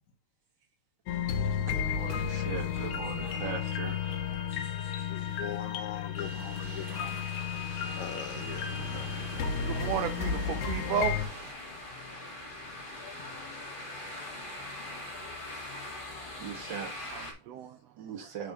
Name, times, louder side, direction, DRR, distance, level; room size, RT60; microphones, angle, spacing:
sound 1, 1.1-11.3, left 7 dB, 90° left, 2.3 m, -33 dB
voice 1, 1.6-4.4 16.4-16.9 18.0-18.5, right 7 dB, 50° right, 1.5 m, -40 dB
sound 2, 1.9-17.3, left 2 dB, 50° left, 0.5 m, -44 dB
voice 2, 5.1-7.2 8.0-9.1, left 9 dB, 70° left, 2.1 m, -41 dB
Thunder / Rain, 6.2-11.5, right 5 dB, 70° right, 2.1 m, -45 dB
voice 3, 6.6-7.0 9.6-11.2 17.0-18.4, right 8 dB, 85° right, 1.4 m, -34 dB
4.9 x 4.1 x 5.3 m
omnidirectional pair, 3.6 m